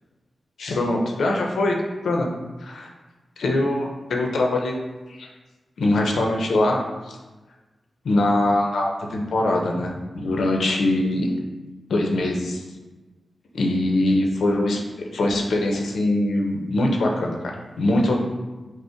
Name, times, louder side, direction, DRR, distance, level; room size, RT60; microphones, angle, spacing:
voice 1, 0.6-1.7 2.0-2.3 2.6-2.9 3.4-4.8 5.1-5.3 5.8-6.8 7.1-7.2 8.0-11.3 11.9-12.6 13.5-14.8 15.1-17.4 17.8-18.2, left 1 dB, 90° left, 1 dB, 0.6 m, -22 dB
5.3 x 2.1 x 4.3 m, 1.2 s
wide cardioid pair, 130°, 0 cm